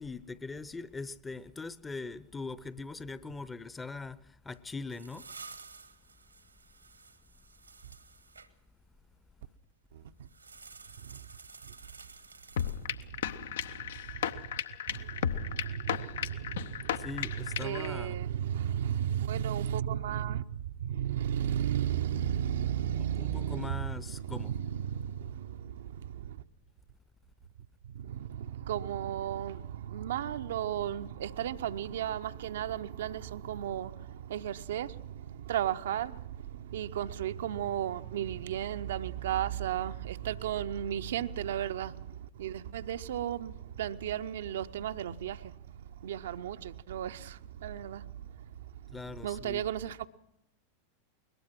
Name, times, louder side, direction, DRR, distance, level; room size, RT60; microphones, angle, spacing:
voice 1, 0.0-5.3 16.9-18.2 23.0-24.5 48.9-49.6, left 3 dB, 15° left, 0.8 m, -41 dB
sound 1, 4.5-8.5 10.2-13.2, right 4 dB, 80° right, 1.4 m, -52 dB
voice 2, 9.9-10.3 11.0-11.2 11.6-11.7 12.8-14.6 14.9-26.4 27.8-50.1, right 10 dB, 60° right, 0.7 m, -35 dB
sound 2, 12.6-17.9, left 9 dB, 60° left, 0.7 m, -35 dB
22.0 x 20.0 x 6.0 m
figure-of-eight pair, 90°, 0 cm